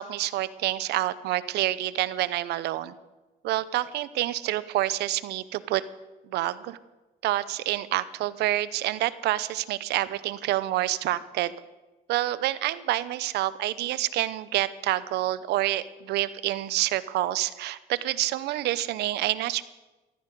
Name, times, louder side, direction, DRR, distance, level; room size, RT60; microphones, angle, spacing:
voice 1, 0.0-2.9 3.4-5.8 6.2-6.8 7.2-11.5 12.1-19.6, right 15 dB, 80° right, 17 dB, 0.8 m, -28 dB
14.0 x 13.5 x 6.8 m, 1.1 s
cardioid pair, 110°, 17 cm